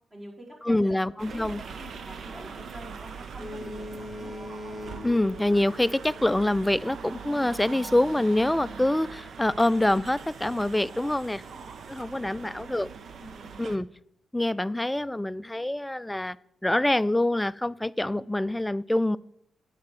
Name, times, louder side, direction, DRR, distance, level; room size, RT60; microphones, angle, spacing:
voice 1, 0.1-4.3 11.4-12.6 13.2-13.7, equal, 30° right, -3 dB, 4.0 m, -47 dB
voice 2, 0.6-1.6 5.0-11.4 11.9-12.9 13.6-13.9 14.3-16.4 16.6-19.2, left 1 dB, 10° left, 18 dB, 0.3 m, -25 dB
sound 1, 1.2-13.8, right 5 dB, 65° right, 0.7 m, -42 dB
Boat Water vehicle, 3.4-6.5, left 1 dB, 15° right, 2.8 m, -40 dB
9.5 x 4.1 x 7.4 m, 0.74 s
supercardioid pair, 55°, 0 cm